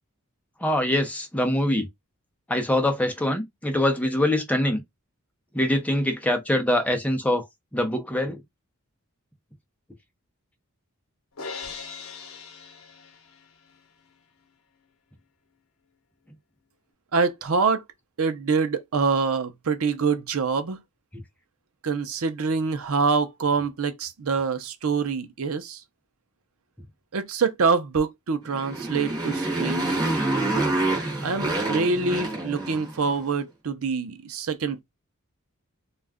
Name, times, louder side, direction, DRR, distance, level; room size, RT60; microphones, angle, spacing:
voice 1, 0.6-1.9 2.5-4.8 5.5-7.4 7.7-8.4 29.8-30.0, left 1 dB, 5° left, 0.5 m, -24 dB
Crash cymbal, 11.4-13.6, left 5 dB, 70° left, 0.7 m, -39 dB
voice 2, 17.1-17.8 18.2-20.8 21.8-25.8 27.1-30.0 31.2-34.8, right 5 dB, 75° right, 0.6 m, -25 dB
Motorcycle, 28.5-33.1, right 2 dB, 20° right, 1.1 m, -27 dB
2.4 x 2.1 x 3.4 m
head